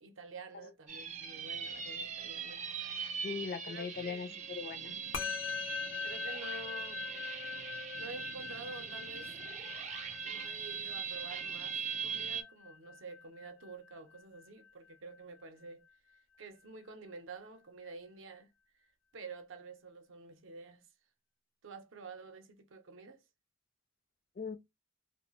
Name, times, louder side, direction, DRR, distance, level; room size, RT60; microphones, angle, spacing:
voice 1, 0.0-2.7 3.6-4.4 4.9-5.4 6.0-7.1 8.0-9.3 10.0-15.8 16.4-18.5 19.1-20.9 21.6-23.2, right 3 dB, 80° right, 0.6 m, -49 dB
sound 1, 0.9-12.4, right 7 dB, 35° right, 0.3 m, -41 dB
voice 2, 3.2-4.9 24.4-24.6, left 5 dB, 45° left, 0.3 m, -40 dB
Musical instrument, 5.1-14.7, left 7 dB, 85° left, 0.6 m, -43 dB
2.4 x 2.1 x 3.0 m
head